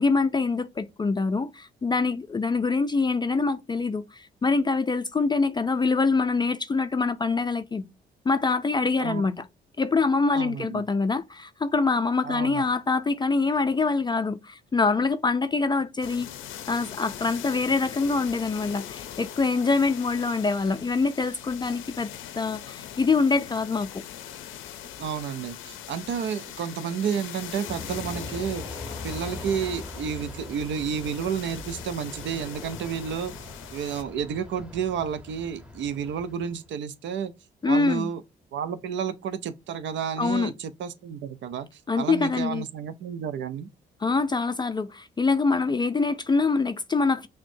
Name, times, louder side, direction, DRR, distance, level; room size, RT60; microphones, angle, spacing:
voice 1, 0.0-7.9 8.3-9.4 9.8-16.3 16.7-22.1 22.4-24.0 37.6-38.1 40.2-40.5 41.9-42.7 44.0-47.3, left 4 dB, 20° left, 0.4 m, -25 dB
voice 2, 10.3-10.8 12.2-12.6 25.0-33.3 33.7-37.3 37.6-38.2 38.5-41.7 42.0-43.7, right 7 dB, 70° right, 0.6 m, -31 dB
sound 1, 16.0-34.0, left 11 dB, 80° left, 0.6 m, -41 dB
Aircraft, 27.7-36.7, left 1 dB, 5° right, 1.0 m, -41 dB
6.0 x 2.1 x 2.6 m
cardioid pair, 90°, 20 cm